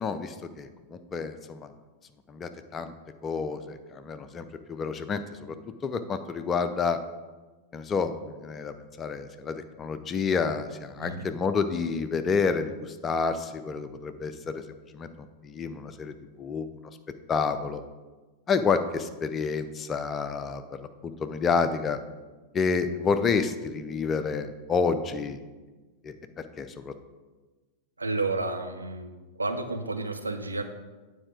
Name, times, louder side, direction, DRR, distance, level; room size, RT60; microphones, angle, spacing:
voice 1, 0.0-1.7 2.3-2.9 3.2-5.6 5.8-7.0 7.7-14.6 14.9-15.1 15.4-16.7 17.3-17.8 18.5-22.0 22.5-25.4 26.0-26.1 26.6-26.9, left 5 dB, 25° left, 10 dB, 0.5 m, -29 dB
voice 2, 11.0-11.3 28.0-29.1 29.4-30.6, right 3 dB, 80° right, 6 dB, 0.6 m, -31 dB
8.8 x 4.3 x 4.9 m, 1.3 s
figure-of-eight pair, 90°, 0 cm